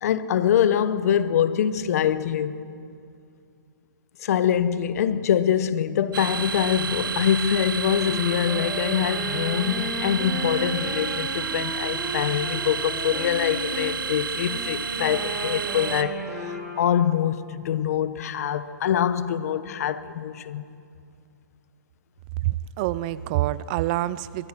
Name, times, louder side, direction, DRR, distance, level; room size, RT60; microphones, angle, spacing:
voice 1, 0.0-2.6 4.2-20.6, left 9 dB, 45° left, 1.0 m, -24 dB
sound 1, 6.1-16.0, right 6 dB, 75° right, 1.3 m, -30 dB
Wind instrument woodwind instrument, 7.8-14.0 14.5-17.1, right 1 dB, 5° left, 4.0 m, -34 dB
voice 2, 22.4-24.5, right 15 dB, 25° right, 0.4 m, -26 dB
24.0 x 21.0 x 6.0 m
hypercardioid pair, 160°, 11 cm